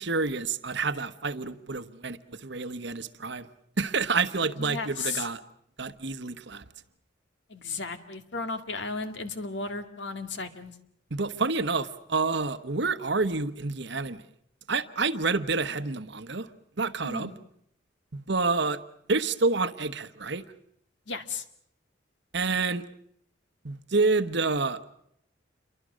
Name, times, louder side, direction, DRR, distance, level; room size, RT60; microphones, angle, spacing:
voice 1, 0.0-3.5 3.8-5.4 5.8-6.6 11.1-14.2 14.7-16.5 16.8-17.3 18.1-18.8 19.1-20.4 22.3-22.8 23.6-24.8, right 3 dB, 65° right, 1.2 m, -28 dB
voice 2, 4.6-5.3 7.5-10.8 17.0-17.3 21.1-21.5, left 4 dB, 65° left, 2.1 m, -34 dB
28.5 x 24.0 x 6.4 m
head